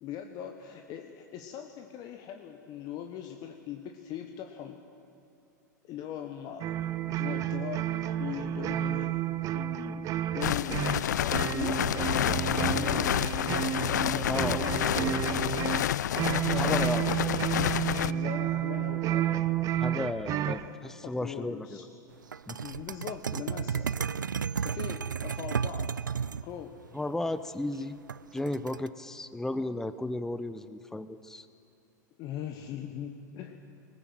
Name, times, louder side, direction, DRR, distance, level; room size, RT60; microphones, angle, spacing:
voice 1, 0.0-4.8 5.8-9.2 9.5-10.1 10.3-13.1 13.9-17.4 18.0-19.4 20.3-20.8 21.0-21.8 22.6-23.9 24.6-25.9 26.3-26.8 32.2-33.6, left 9 dB, 40° left, 6 dB, 1.3 m, -41 dB
sound 1, 6.6-20.7, right 12 dB, 35° right, 0.6 m, -31 dB
sound 2, 10.4-18.1, left 11 dB, 65° left, 0.4 m, -29 dB
voice 2, 14.3-14.7 14.9-15.4 16.5-17.3 19.8-21.8 22.5-22.6 26.9-28.0 28.3-31.5, left 2 dB, 5° left, 13 dB, 0.6 m, -34 dB
sound 3, 22.3-26.4 28.1-28.9, right 6 dB, 80° right, 0.4 m, -33 dB
20.5 x 19.0 x 7.7 m, 2.8 s
figure-of-eight pair, 90°, 10 cm